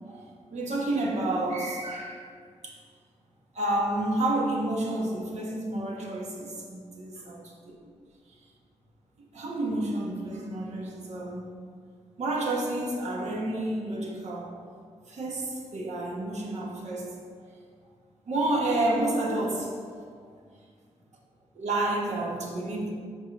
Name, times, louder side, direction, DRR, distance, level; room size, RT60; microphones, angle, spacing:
voice 1, 0.1-2.2 2.6-2.8 3.5-7.5 9.3-11.5 12.2-14.5 15.1-17.1 18.2-19.8 21.5-22.9, right 1 dB, 70° right, -2 dB, 1.3 m, -30 dB
5.3 x 4.5 x 5.2 m, 2.1 s
cardioid pair, 60°, 12 cm